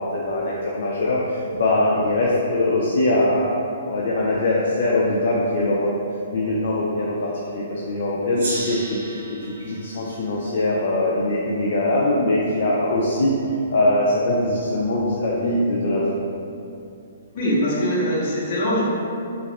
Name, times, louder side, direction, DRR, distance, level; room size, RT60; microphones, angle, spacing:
voice 1, 0.0-3.5 3.8-5.9 6.3-9.2 9.4-13.3 13.7-16.0, left 1 dB, 55° left, -5 dB, 0.3 m, -22 dB
Gong, 8.3-11.5, right 2 dB, 60° right, 0.7 m, -35 dB
voice 2, 17.3-18.8, equal, 40° left, -7 dB, 0.8 m, -22 dB
2.7 x 2.4 x 3.2 m, 2.6 s
hypercardioid pair, 160°, 0 cm